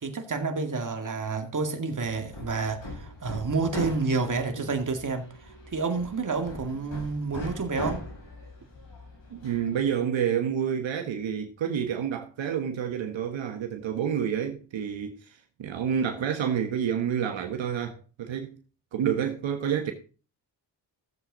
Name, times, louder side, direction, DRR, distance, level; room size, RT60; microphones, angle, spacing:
voice 1, 0.0-5.3 5.7-8.0, right 4 dB, 40° right, 2.2 m, -29 dB
Hammer, 2.0-9.8, left 1 dB, 75° left, 7.0 m, -40 dB
voice 2, 9.3-18.5 18.9-19.9, right 8 dB, 75° right, 1.4 m, -29 dB
13.5 x 7.8 x 4.0 m
cardioid pair, 75°, 46 cm